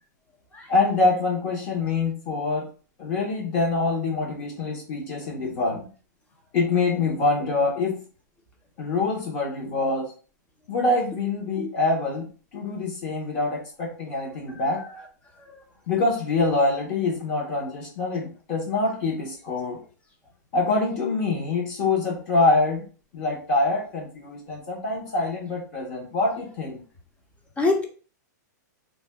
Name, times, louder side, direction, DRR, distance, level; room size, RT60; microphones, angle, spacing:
voice 1, 0.7-2.7 3.0-5.9 6.5-8.0 8.8-10.1 10.7-12.3 12.5-14.8 15.9-19.8 20.5-22.9 23.1-26.8, left 3 dB, 40° left, -1 dB, 1.0 m, -25 dB
voice 2, 14.5-15.0 15.5-15.6 27.6-27.9, left 3 dB, 15° left, 2 dB, 0.5 m, -27 dB
2.5 x 2.2 x 3.4 m, 0.39 s
hypercardioid pair, 145°, 10 cm